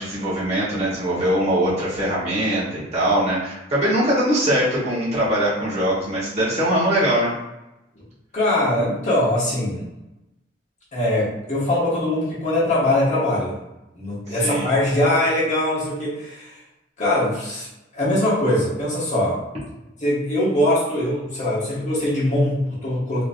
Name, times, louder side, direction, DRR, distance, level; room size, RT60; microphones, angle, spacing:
voice 1, 0.0-7.3 14.4-14.7, right 1 dB, 40° right, -9 dB, 1.4 m, -22 dB
voice 2, 8.3-9.9 10.9-13.6 13.9-16.5 17.0-17.7 17.9-19.4 20.0-23.2, left 1 dB, 40° left, -8 dB, 1.2 m, -22 dB
3.3 x 2.8 x 2.6 m, 0.96 s
head